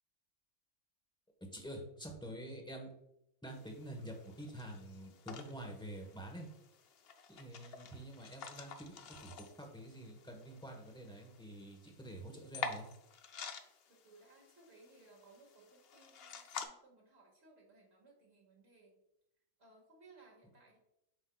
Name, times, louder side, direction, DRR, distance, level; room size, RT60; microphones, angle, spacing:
voice 1, 1.4-2.9 3.4-6.5 7.3-12.9, right 1 dB, 5° left, 2 dB, 0.9 m, -48 dB
sound 1, 3.5-16.7, left 6 dB, 60° left, 0.7 m, -49 dB
voice 2, 13.9-19.0 19.6-20.8, right 3 dB, 50° right, -2 dB, 2.1 m, -63 dB
8.1 x 5.4 x 2.3 m, 0.80 s
omnidirectional pair, 1.4 m